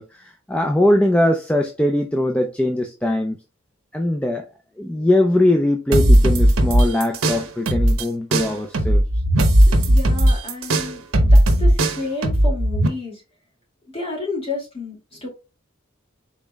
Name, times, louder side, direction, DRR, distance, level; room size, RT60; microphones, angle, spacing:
voice 1, 0.0-3.4 3.9-4.5 4.8-9.0, left 1 dB, 5° left, 0.4 m, -21 dB
sound 1, 5.9-8.0 8.3-12.9, right 1 dB, 85° right, 0.9 m, -16 dB
voice 2, 9.8-13.2 13.9-15.3, left 3 dB, 30° left, 2.3 m, -31 dB
5.3 x 4.1 x 2.3 m
head